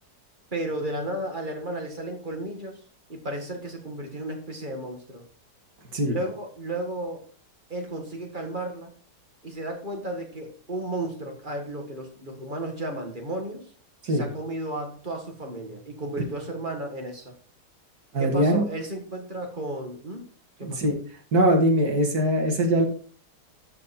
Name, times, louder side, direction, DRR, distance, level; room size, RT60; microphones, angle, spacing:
voice 1, 0.5-2.8 3.1-5.2 6.0-7.2 7.7-8.9 9.4-13.6 14.1-17.4 18.2-20.3 20.6-20.8, right 1 dB, 30° right, 3 dB, 1.9 m, -33 dB
voice 2, 18.1-18.6 20.6-20.9 21.3-22.9, right 1 dB, 60° right, 2 dB, 2.5 m, -21 dB
12.5 x 4.9 x 4.3 m, 0.42 s
omnidirectional pair, 1.9 m